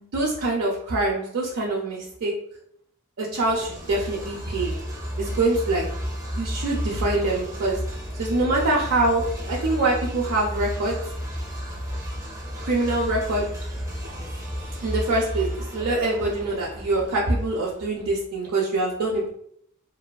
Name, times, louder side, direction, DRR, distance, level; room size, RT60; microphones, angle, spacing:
voice 1, 0.0-2.3 3.2-4.7 5.2-5.9 6.3-7.8 8.1-11.0 12.6-13.5 14.8-19.3, right 2 dB, 75° right, -4 dB, 0.5 m, -24 dB
sound 1, 3.3-18.0, equal, 15° right, 0.5 m, -33 dB
2.6 x 2.3 x 2.2 m, 0.69 s
head